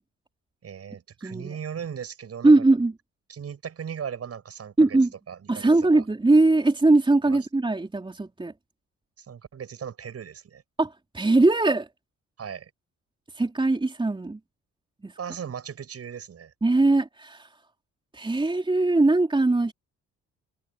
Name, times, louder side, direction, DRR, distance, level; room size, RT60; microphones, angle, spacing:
voice 1, 0.6-2.6 3.3-5.0 5.3-6.1 7.2-7.5 9.2-10.6 12.4-12.7 15.2-16.5, right 7 dB, 55° right, 7.8 m, -37 dB
voice 2, 1.2-1.5 2.4-2.9 4.8-5.1 5.5-8.5 10.8-11.9 13.4-14.4 15.0-15.1 16.6-17.5 18.1-19.7, right 2 dB, 15° right, 4.1 m, -21 dB
cardioid pair, 90°, 30 cm